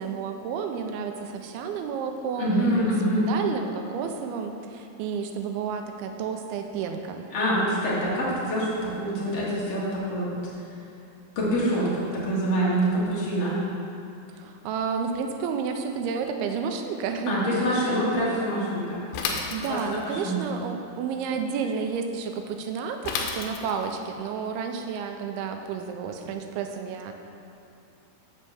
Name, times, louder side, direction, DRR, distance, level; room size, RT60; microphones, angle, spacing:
voice 1, 0.0-7.3 14.3-17.8 19.2-27.1, right 6 dB, 85° right, 5 dB, 2.6 m, -31 dB
voice 2, 2.4-3.3 7.3-10.4 11.4-13.6 17.3-19.4 19.7-19.8 20.0-20.4, equal, 45° left, -7 dB, 2.5 m, -25 dB
Bicycle / Mechanisms, 19.1-20.1 23.0-24.0, left 5 dB, 80° left, 2.7 m, -31 dB
9.8 x 4.4 x 6.8 m, 2.7 s
omnidirectional pair, 4.5 m